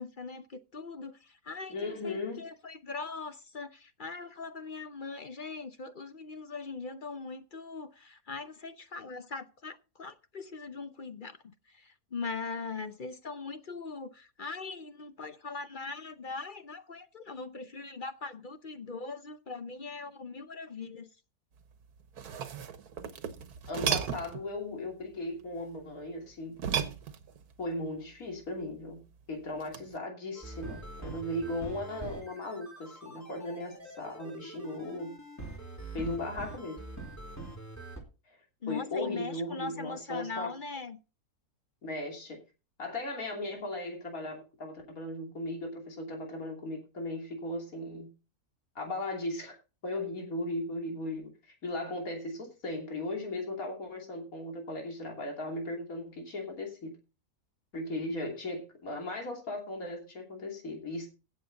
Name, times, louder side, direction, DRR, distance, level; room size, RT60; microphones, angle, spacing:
voice 1, 0.0-21.1 38.6-41.0, left 4 dB, 45° left, 0.7 m, -41 dB
voice 2, 1.7-2.4 23.7-26.5 27.6-35.2 35.9-36.8 38.3-38.4 38.7-40.5 41.8-42.4 42.8-48.1 48.8-49.6 49.8-56.9 57.7-61.1, left 2 dB, 65° left, 3.4 m, -37 dB
sound 1, 22.0-24.5 26.6-27.5 29.6-30.0, right 8 dB, 90° right, 1.6 m, -34 dB
sound 2, 30.3-38.0, right 2 dB, 10° left, 2.8 m, -44 dB
16.0 x 7.5 x 4.0 m
omnidirectional pair, 1.6 m